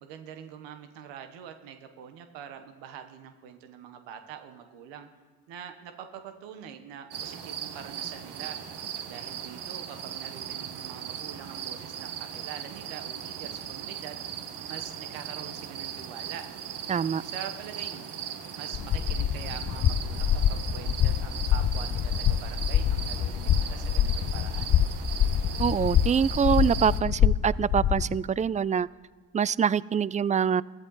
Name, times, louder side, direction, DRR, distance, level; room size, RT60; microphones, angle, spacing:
voice 1, 0.0-5.1 5.5-8.6 9.1-14.2 14.7-16.5 17.2-18.1 18.5-24.7, right 8 dB, 90° right, 7 dB, 1.0 m, -44 dB
sound 1, 7.1-27.0, right 8 dB, 70° right, 1.4 m, -38 dB
voice 2, 16.9-17.2 25.6-28.9 29.3-30.6, right 7 dB, 20° right, 21 dB, 0.3 m, -25 dB
sound 2, 18.7-28.2, left 9 dB, 45° left, 0.6 m, -26 dB
14.5 x 14.0 x 3.9 m, 1.5 s
supercardioid pair, 50°, 43 cm